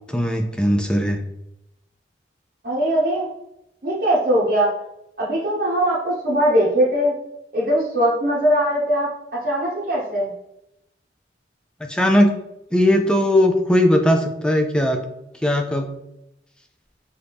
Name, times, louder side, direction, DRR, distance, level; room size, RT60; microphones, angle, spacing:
voice 1, 0.1-1.2 11.8-12.4 12.7-15.0 15.3-15.9, left 1 dB, 5° left, 4 dB, 0.3 m, -18 dB
voice 2, 2.6-3.2 3.8-4.7 5.2-7.1 7.5-10.3, equal, 55° right, -8 dB, 0.9 m, -20 dB
4.7 x 2.6 x 3.4 m, 0.83 s
head